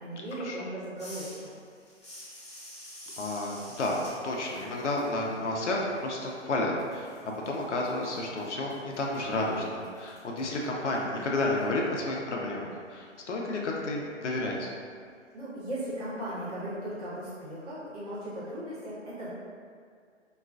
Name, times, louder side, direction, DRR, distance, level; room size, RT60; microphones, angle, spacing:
voice 1, 0.0-1.6 15.3-19.3, right 1 dB, 30° right, -10 dB, 1.1 m, -37 dB
sound 1, 1.0-6.5 6.8-11.6, equal, 25° left, 0.4 m, -50 dB
voice 2, 3.2-14.7, left 2 dB, 70° left, -2 dB, 0.6 m, -31 dB
3.7 x 2.3 x 2.4 m, 2.1 s
hypercardioid pair, 150°, 37 cm